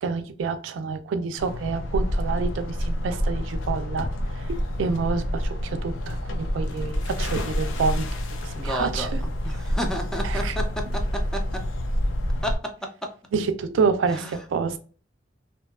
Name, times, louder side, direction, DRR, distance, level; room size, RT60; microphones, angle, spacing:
voice 1, 0.0-4.1 4.3-8.1 8.4-9.2 10.2-10.6 13.3-14.8, right 5 dB, 85° right, 9 dB, 0.3 m, -28 dB
sound 1, 1.4-12.6, equal, 90° left, 0.5 m, -28 dB
voice 2, 8.6-9.1 9.4-10.7 11.3-11.4 12.4-12.6 13.0-13.1 14.1-14.3, equal, 5° left, 3 dB, 0.4 m, -30 dB
2.6 x 2.2 x 2.2 m, 0.40 s
head